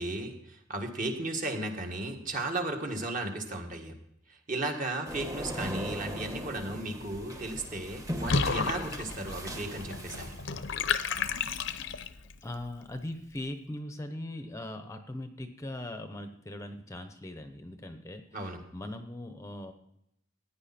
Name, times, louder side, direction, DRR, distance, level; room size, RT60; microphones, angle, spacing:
voice 1, 0.0-3.9 4.3-10.4 18.3-18.6, right 2 dB, 40° right, 3 dB, 1.8 m, -35 dB
sound 1, 5.0-10.9, equal, 15° right, 1.2 m, -40 dB
Water / Bathtub (filling or washing), 8.2-12.3, left 5 dB, 65° left, 0.7 m, -32 dB
voice 2, 11.5-11.9 12.2-19.7, left 1 dB, 15° left, 7 dB, 0.8 m, -40 dB
15.5 x 9.8 x 4.3 m, 0.81 s
head